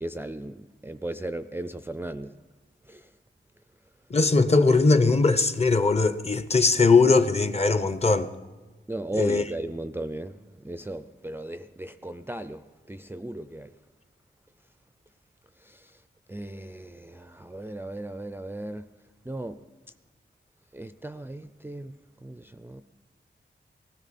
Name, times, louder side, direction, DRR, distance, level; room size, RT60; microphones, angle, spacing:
voice 1, 0.0-2.3 2.9-3.0 8.9-10.4 10.6-13.7 15.6-15.9 16.3-18.9 19.3-19.6 20.7-21.9 22.2-22.8, right 1 dB, 10° right, 0.4 m, -36 dB
voice 2, 4.1-8.3 9.2-9.4, left 3 dB, 35° left, 0.7 m, -20 dB
19.5 x 16.0 x 4.2 m
wide cardioid pair, 90°, 20 cm